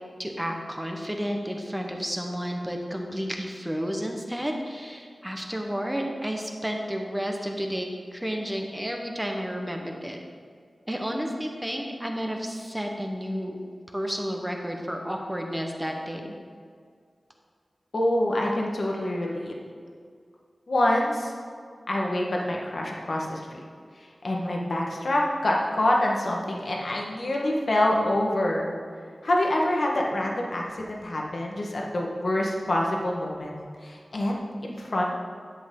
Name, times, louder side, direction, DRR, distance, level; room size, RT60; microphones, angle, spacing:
voice 1, 0.2-10.2 10.9-13.6 13.9-16.2, equal, 10° right, 2 dB, 1.1 m, -31 dB
voice 2, 17.9-19.5 20.7-21.3 21.9-23.6 23.9-28.7 29.2-35.0, left 1 dB, 60° left, -1 dB, 1.4 m, -26 dB
10.5 x 8.1 x 3.9 m, 2.1 s
wide cardioid pair, 90°, 0 cm